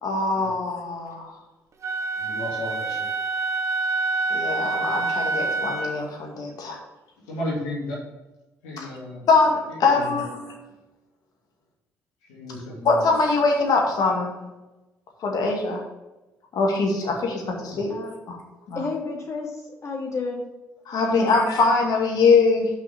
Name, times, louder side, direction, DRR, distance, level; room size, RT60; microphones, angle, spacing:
voice 1, 0.0-1.3 4.3-6.8 8.8-8.9 9.3-10.4 12.8-14.4 15.2-15.8 16.6-17.9 18.7-18.8 20.9-22.7, left 4 dB, 60° left, 1 dB, 2.2 m, -22 dB
Wind instrument woodwind instrument, 1.8-6.0, right 3 dB, 45° right, 1.3 m, -26 dB
voice 2, 2.2-3.1 7.3-8.0 8.6-9.2 9.7-10.2 12.3-13.0 20.9-21.1, left 1 dB, 80° left, -6 dB, 2.9 m, -33 dB
voice 3, 18.7-20.4 21.1-21.5, left 3 dB, 45° left, -1 dB, 2.8 m, -31 dB
6.1 x 5.7 x 7.0 m, 1.0 s
hypercardioid pair, 50°, 7 cm